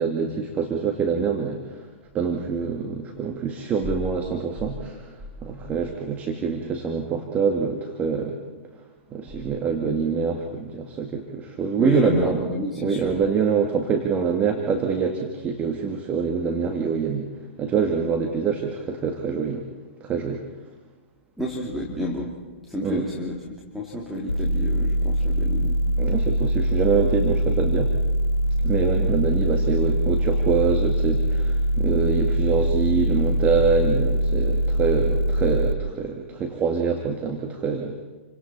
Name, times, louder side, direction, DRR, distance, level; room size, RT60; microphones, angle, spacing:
voice 1, 0.0-1.8 2.1-8.4 9.1-12.4 12.8-17.3 17.6-19.7 20.0-20.4 22.8-23.0 26.0-27.9 28.6-38.0, right 5 dB, 20° right, 2 dB, 2.2 m, -25 dB
voice 2, 11.8-13.3 21.4-22.3 22.7-25.8, left 1 dB, ahead, -3 dB, 3.0 m, -29 dB
sound 1, 24.3-35.7, equal, 75° left, 1.9 m, -23 dB
29.5 x 25.0 x 4.3 m, 1.3 s
figure-of-eight pair, 115°, 7 cm